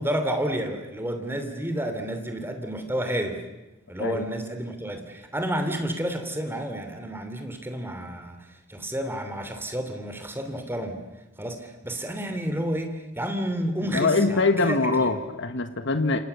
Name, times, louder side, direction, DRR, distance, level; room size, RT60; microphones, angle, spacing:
voice 1, 0.0-3.4 3.9-11.0 11.4-15.1, right 1 dB, 10° right, 6 dB, 3.1 m, -30 dB
voice 2, 13.8-16.2, left 3 dB, 55° left, 8 dB, 1.5 m, -23 dB
29.0 x 26.5 x 7.0 m, 1.0 s
head